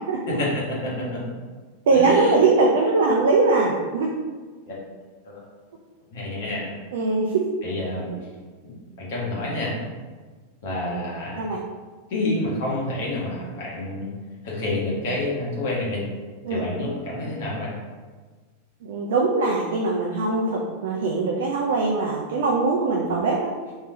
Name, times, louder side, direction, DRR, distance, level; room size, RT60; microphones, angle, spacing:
voice 1, 0.3-1.2 1.9-2.3 4.7-4.8 5.2-5.4 6.1-6.8 7.6-8.1 8.6-9.8 10.6-11.5 12.1-14.1 14.4-16.0 16.5-17.7, left 1 dB, 55° left, -5 dB, 1.5 m, -28 dB
voice 2, 1.9-4.1 6.9-7.4 11.4-11.6 16.4-16.6 18.8-23.5, right 3 dB, 60° right, -1 dB, 0.5 m, -21 dB
3.7 x 3.1 x 3.8 m, 1.4 s
figure-of-eight pair, 90°, 0 cm